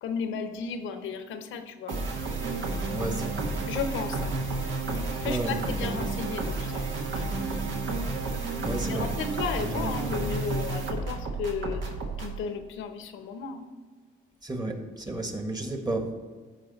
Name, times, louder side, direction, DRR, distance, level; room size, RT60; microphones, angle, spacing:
voice 1, 0.0-2.0 3.7-4.4 5.2-6.8 7.1-7.5 8.9-11.9 12.2-13.7, left 5 dB, 85° left, 8 dB, 0.9 m, -34 dB
sound 1, 1.9-12.4, right 3 dB, 75° right, 1.6 m, -31 dB
voice 2, 2.9-3.4 5.2-5.6 8.6-9.1 9.6-9.9 14.4-16.1, right 2 dB, 20° right, 4 dB, 1.5 m, -32 dB
13.5 x 4.9 x 4.1 m, 1.5 s
cardioid pair, 90°, 20 cm